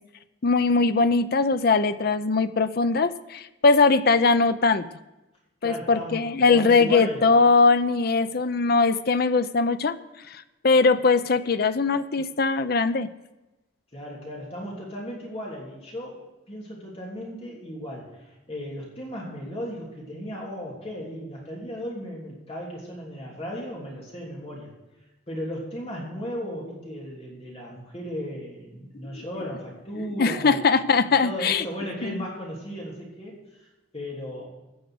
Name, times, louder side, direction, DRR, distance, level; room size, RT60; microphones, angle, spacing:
voice 1, 0.4-4.9 5.6-10.0 10.3-13.1 29.1-29.2 30.2-31.6 32.0-32.2, left 4 dB, 55° left, 12 dB, 0.6 m, -21 dB
voice 2, 5.6-6.2 6.5-7.2 13.9-16.2 16.5-24.7 25.3-30.6 31.2-34.5, equal, 30° left, -3 dB, 3.2 m, -36 dB
15.0 x 6.4 x 7.8 m, 1.0 s
head